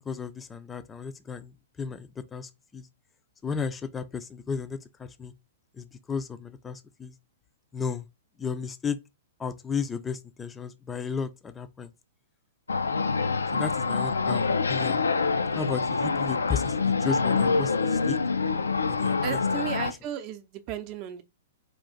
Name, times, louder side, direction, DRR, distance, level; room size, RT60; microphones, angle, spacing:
voice 1, 0.0-2.9 3.4-5.3 5.8-7.1 7.7-8.1 8.4-9.0 9.4-11.9 13.5-15.1 15.5-18.2 18.8-19.4, left 6 dB, 15° left, 0.4 m, -34 dB
sound 1, 12.7-19.9, left 4 dB, 70° left, 0.4 m, -26 dB
voice 2, 19.2-21.2, right 9 dB, 35° right, 0.6 m, -34 dB
4.0 x 2.5 x 3.7 m
figure-of-eight pair, 110°, 0 cm